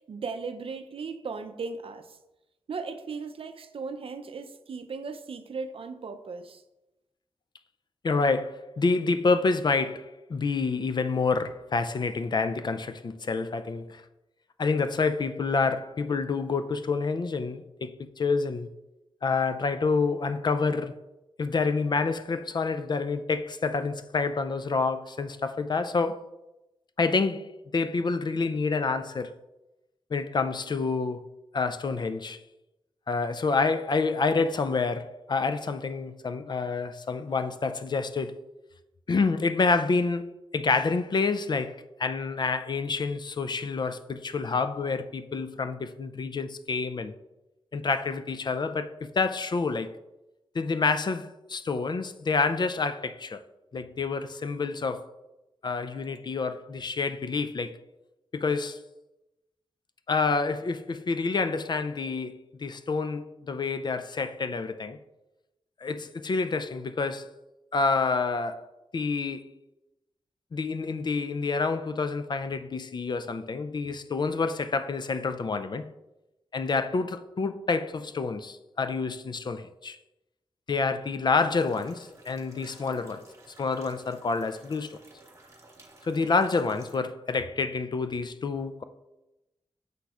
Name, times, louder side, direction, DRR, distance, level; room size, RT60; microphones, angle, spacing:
voice 1, 0.0-2.2 2.7-6.6, right 4 dB, 65° right, 0.5 m, -37 dB
voice 2, 8.0-14.0 14.6-18.7 19.2-20.9 21.4-26.2 27.0-29.4 30.1-31.2 31.5-32.4 33.1-38.3 39.1-47.1 47.7-49.9 50.5-53.4 53.7-55.1 55.6-57.8 58.3-58.8 60.1-65.0 65.8-67.3 67.7-68.6 68.9-69.4 70.5-75.9 76.5-80.0 80.7-83.2 83.6-85.0 86.0-88.8, left 4 dB, 45° left, 0.4 m, -28 dB
sound 1, 81.5-87.0, right 2 dB, 30° right, 1.2 m, -54 dB
6.7 x 5.9 x 2.4 m
wide cardioid pair, 75°, 10 cm